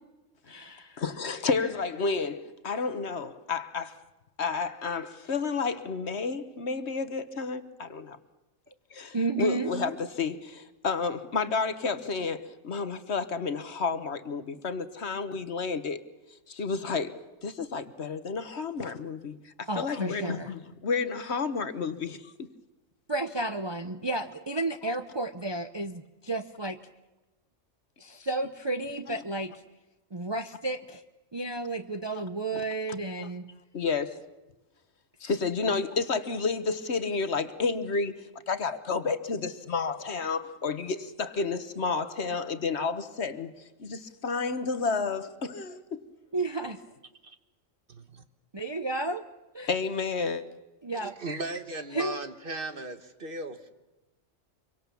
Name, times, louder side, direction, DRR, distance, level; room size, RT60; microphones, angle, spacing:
voice 1, 0.5-1.0 9.1-9.7 19.7-20.5 23.1-26.8 28.0-29.5 30.1-31.0 31.3-33.5 46.3-46.8 48.5-49.2 49.5-49.7 50.8-51.2 51.9-52.2, right 2 dB, 25° right, 0.7 m, -32 dB
voice 2, 1.0-4.0 4.4-8.2 8.9-16.0 16.5-17.1 17.4-22.5 32.5-32.6 33.2-33.3 33.7-34.2 35.2-43.5 43.8-46.0 49.7-50.4, left 4 dB, 60° left, 1.4 m, -31 dB
voice 3, 50.9-53.7, right 2 dB, 45° right, 1.5 m, -36 dB
26.0 x 24.0 x 7.0 m
omnidirectional pair, 1.3 m